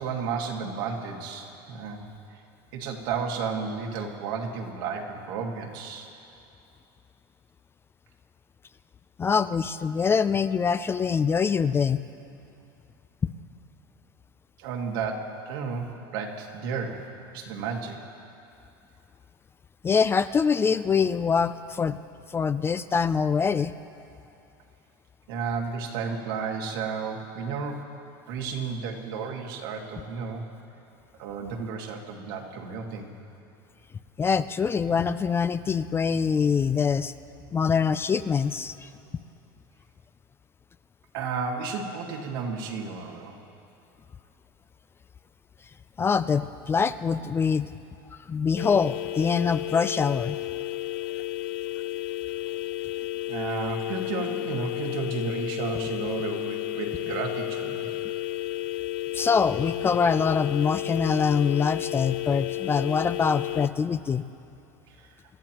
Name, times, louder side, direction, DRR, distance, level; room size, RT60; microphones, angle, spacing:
voice 1, 0.0-2.0 2.3-2.4 2.7-6.1 14.6-17.1 17.3-18.0 25.3-28.0 28.3-30.5 31.2-33.2 41.1-43.4 53.3-58.0 64.9-65.1, right 5 dB, 75° right, 1 dB, 1.8 m, -32 dB
voice 2, 9.2-12.0 19.8-22.0 22.3-23.7 34.2-37.1 37.5-38.9 46.0-47.7 48.3-50.4 59.1-64.2, left 6 dB, 20° left, 13 dB, 0.3 m, -24 dB
sound 1, 48.6-63.7, left 17 dB, 80° left, 0.4 m, -32 dB
27.0 x 13.5 x 3.0 m, 2.7 s
supercardioid pair, 115°, 12 cm